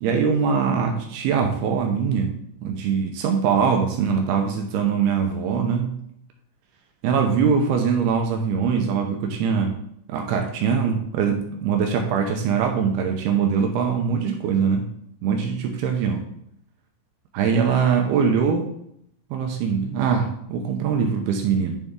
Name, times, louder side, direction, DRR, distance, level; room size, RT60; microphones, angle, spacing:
voice 1, 0.0-2.3 2.6-6.0 7.0-9.7 10.1-14.9 15.2-16.2 17.3-18.6 19.3-21.8, right 6 dB, 80° right, 3 dB, 2.3 m, -22 dB
10.5 x 4.1 x 3.6 m, 0.73 s
omnidirectional pair, 5.3 m